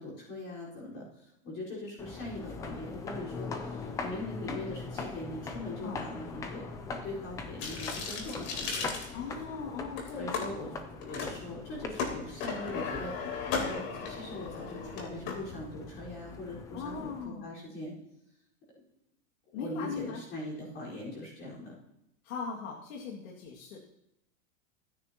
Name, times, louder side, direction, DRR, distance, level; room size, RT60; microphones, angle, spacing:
voice 1, 0.0-8.9 9.4-9.5 9.8-17.9 19.5-21.7, left 2 dB, 30° left, -6 dB, 4.7 m, -41 dB
sound 1, 2.0-17.3, left 4 dB, 10° left, 0.4 m, -42 dB
sound 2, 7.6-9.6 10.0-10.5 11.0-11.3 11.6-15.3, left 5 dB, 50° left, 3.6 m, -36 dB
voice 2, 9.1-10.5 16.7-17.5 19.5-20.2 22.2-23.8, left 5 dB, 75° left, -2 dB, 2.4 m, -39 dB
24.5 x 9.8 x 3.0 m, 0.81 s
supercardioid pair, 165°, 41 cm